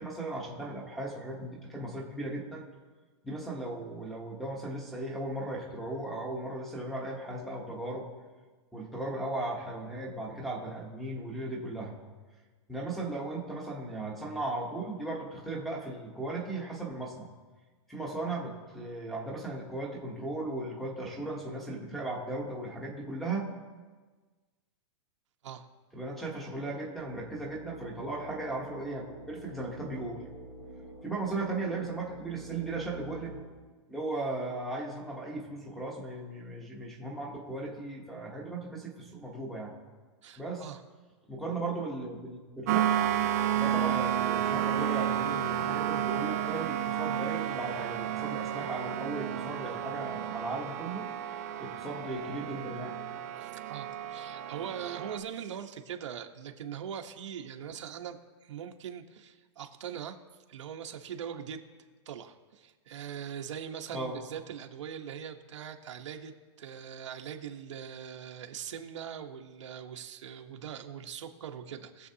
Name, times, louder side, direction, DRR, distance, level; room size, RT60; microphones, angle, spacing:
voice 1, 0.0-2.6 3.2-8.1 8.7-11.9 12.7-17.3 17.9-23.5 25.9-30.2 31.0-33.4 33.9-39.7 40.4-40.7 41.3-43.0 43.6-51.1 51.6-53.0 63.9-64.2, right 2 dB, ahead, -1 dB, 0.9 m, -37 dB
sound 1, 27.0-33.4, right 1 dB, 45° left, 3.7 m, -47 dB
voice 2, 40.2-40.8 53.4-60.2 60.5-61.6 62.1-72.1, right 8 dB, 80° right, 5 dB, 1.1 m, -41 dB
sound 2, 42.7-55.2, right 10 dB, 35° right, 0.6 m, -31 dB
21.0 x 7.2 x 2.8 m, 1.4 s
supercardioid pair, 180°, 15 cm